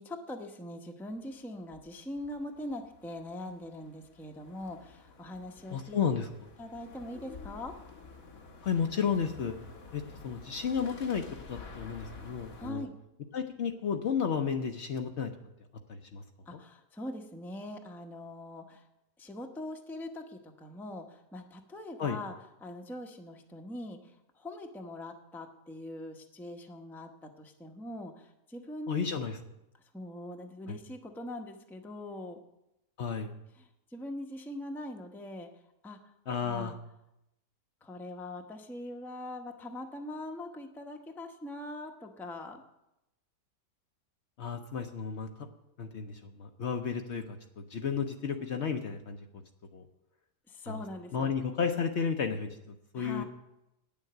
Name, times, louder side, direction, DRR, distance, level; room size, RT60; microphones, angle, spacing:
voice 1, 0.0-6.0 6.6-7.7 12.6-12.9 16.5-18.8 19.2-22.3 22.6-29.1 29.9-32.4 33.6-35.5 35.8-36.0 36.4-36.8 37.8-42.6 50.5-51.3 52.9-53.2, left 1 dB, ahead, 3 dB, 0.7 m, -42 dB
sound 1, 1.1-12.7, left 4 dB, 70° left, 1.6 m, -50 dB
voice 2, 5.7-6.3 8.6-9.6 9.9-12.9 13.3-15.3 15.9-16.2 16.5-16.6 22.0-22.2 28.9-29.4 30.7-30.8 33.0-33.3 36.3-36.7 44.4-45.5 45.8-49.3 49.7-49.8 50.7-50.8 51.1-53.2, left 6 dB, 55° left, 5 dB, 0.9 m, -33 dB
9.6 x 7.2 x 7.8 m, 0.88 s
omnidirectional pair, 1.5 m